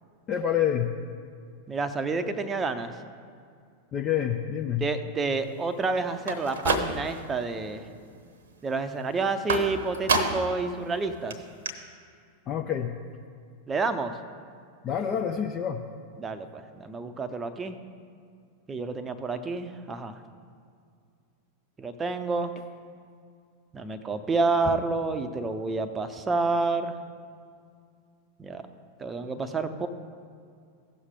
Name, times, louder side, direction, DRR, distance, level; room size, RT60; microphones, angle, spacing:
voice 1, 0.3-0.9 3.9-4.8 12.5-12.9 14.8-15.8, left 9 dB, 30° left, 5 dB, 0.5 m, -27 dB
voice 2, 1.7-2.9 4.8-7.8 8.6-11.4 13.7-14.1 16.2-17.8 18.7-20.2 21.8-22.5 23.7-27.0 28.4-28.7 29.0-29.9, right 3 dB, 20° right, 9 dB, 0.6 m, -29 dB
sound 1, 6.2-7.3 7.7-8.2 9.5-10.6 10.9-11.0 11.3-11.4 11.7-11.8, right 3 dB, 65° right, 0.9 m, -28 dB
16.0 x 6.4 x 3.7 m, 2.3 s
figure-of-eight pair, 90°, 0 cm